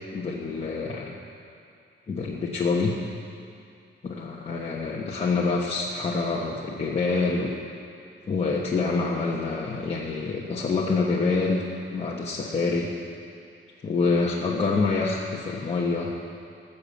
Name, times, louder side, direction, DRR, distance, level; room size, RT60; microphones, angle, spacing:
voice 1, 0.1-1.1 2.1-2.9 4.0-7.5 8.3-11.6 11.9-12.9 13.8-16.1, left 4 dB, 30° left, -4 dB, 1.1 m, -26 dB
19.5 x 6.9 x 8.3 m, 2.5 s
wide cardioid pair, 180°, 21 cm